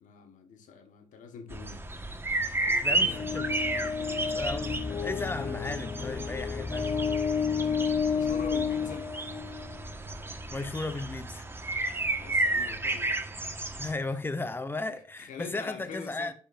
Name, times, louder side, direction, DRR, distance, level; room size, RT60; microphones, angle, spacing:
voice 1, 0.0-1.9 2.6-4.4 8.1-9.1 12.2-13.1 15.2-16.3, left 7 dB, 75° left, 1.4 m, -44 dB
sound 1, 1.5-13.9, right 2 dB, 20° right, 1.4 m, -32 dB
voice 2, 2.8-3.5 4.3-6.9 10.5-11.5 13.8-16.3, left 2 dB, 15° left, 1.0 m, -35 dB
sound 2, 2.9-9.9, left 6 dB, 35° left, 0.6 m, -31 dB
10.0 x 6.9 x 2.5 m
supercardioid pair, 55°, 13 cm